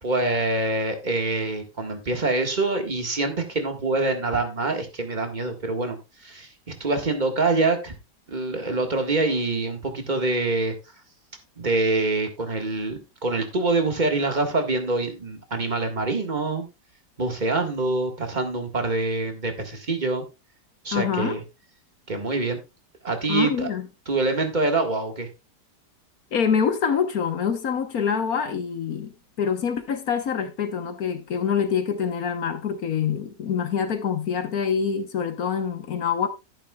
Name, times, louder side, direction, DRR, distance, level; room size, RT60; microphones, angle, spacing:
voice 1, 0.0-7.9 8.3-10.7 11.6-16.7 17.2-20.2 20.8-21.4 22.1-22.6 23.0-23.7 24.1-25.3, right 2 dB, 25° right, 1.8 m, -25 dB
voice 2, 20.9-21.4 23.3-23.9 26.3-29.1 29.4-36.3, left 7 dB, 60° left, 1.5 m, -25 dB
12.0 x 10.5 x 2.4 m
omnidirectional pair, 1.9 m